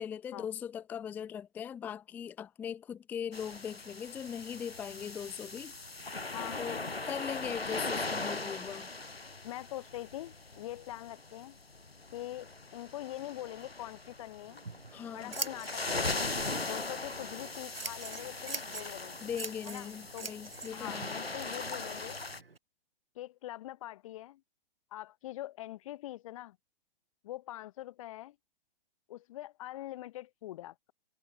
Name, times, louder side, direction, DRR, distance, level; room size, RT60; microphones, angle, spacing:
voice 1, 0.0-5.8 6.6-8.9 14.9-15.3 19.2-21.1, left 8 dB, 5° left, 0.7 m, -40 dB
sound 1, 3.3-22.4, left 3 dB, 90° left, 1.5 m, -40 dB
voice 2, 9.4-11.6 12.1-14.6 15.1-16.3 16.6-19.2 19.7-20.3 20.7-22.2 23.1-24.4 24.9-26.6 27.2-28.4 29.1-30.9, left 15 dB, 35° left, 3.4 m, -43 dB
Scissors, 14.4-22.6, right 4 dB, 75° right, 4.7 m, -45 dB
figure-of-eight pair, 130°, 29 cm